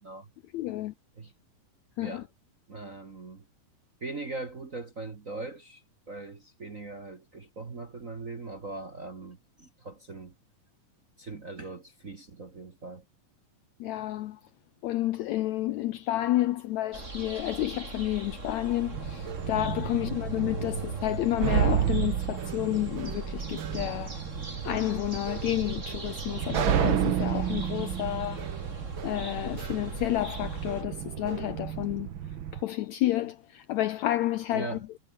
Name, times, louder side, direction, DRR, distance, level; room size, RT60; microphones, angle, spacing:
voice 1, 0.5-0.9 2.0-2.2 13.8-14.4 14.8-24.2 24.6-28.5 29.0-32.1 32.5-34.8, left 15 dB, 80° left, 1.7 m, -30 dB
voice 2, 2.7-3.4 4.0-10.3 11.2-13.0 19.9-20.3 34.5-34.8, right 3 dB, 35° right, 1.3 m, -40 dB
sound 1, 16.9-30.8, right 2 dB, 20° right, 4.0 m, -39 dB
sound 2, 18.9-32.6, right 10 dB, 65° right, 1.2 m, -32 dB
omnidirectional pair, 4.0 m